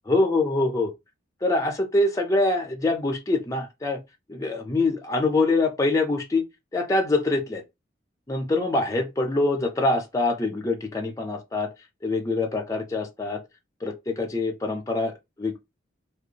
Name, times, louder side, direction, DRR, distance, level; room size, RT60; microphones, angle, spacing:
voice 1, 0.1-0.9 1.4-4.0 4.3-6.4 6.7-7.6 8.3-11.7 12.0-13.4 13.8-15.6, left 2 dB, 15° left, 0.4 m, -24 dB
2.5 x 2.2 x 2.7 m
head